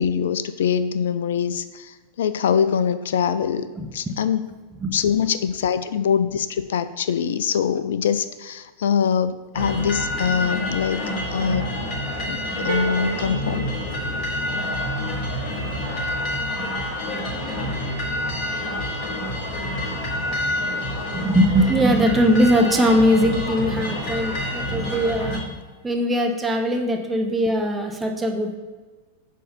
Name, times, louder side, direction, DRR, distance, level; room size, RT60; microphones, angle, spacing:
voice 1, 0.0-3.7 3.9-4.4 4.9-11.0 11.3-11.7 12.3-13.7 17.7-17.8, left 7 dB, 60° left, 13 dB, 0.3 m, -23 dB
sound 1, 9.5-25.4, left 1 dB, 35° left, 1.5 m, -27 dB
sound 2, 12.7-14.7, right 5 dB, 70° right, 0.9 m, -32 dB
voice 2, 21.1-25.4 25.8-28.6, equal, 10° right, 2 dB, 0.7 m, -20 dB
6.4 x 2.7 x 5.5 m, 1.3 s
figure-of-eight pair, 90°, 0 cm